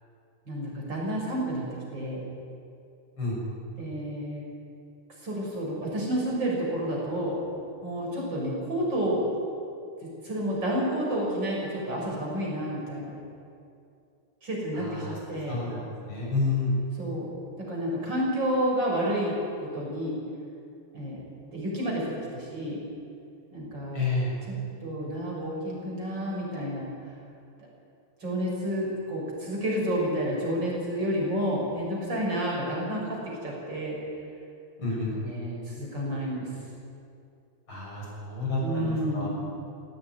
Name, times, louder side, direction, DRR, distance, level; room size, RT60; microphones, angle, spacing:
voice 1, 0.5-2.2 3.8-4.4 5.2-7.4 7.8-9.3 10.2-13.2 14.4-15.6 17.0-17.3 17.6-19.4 19.7-20.2 20.9-21.2 21.5-22.8 23.5-24.0 24.5-24.6 24.8-26.9 28.2-34.0 34.9-36.5 38.6-39.5, equal, 60° right, -3 dB, 6.7 m, -30 dB
voice 2, 14.7-15.1 15.5-16.8 23.9-24.3 34.8-35.1 37.7-39.3, left 3 dB, 90° left, -4 dB, 7.8 m, -29 dB
18.0 x 16.0 x 9.4 m, 2.5 s
omnidirectional pair, 2.2 m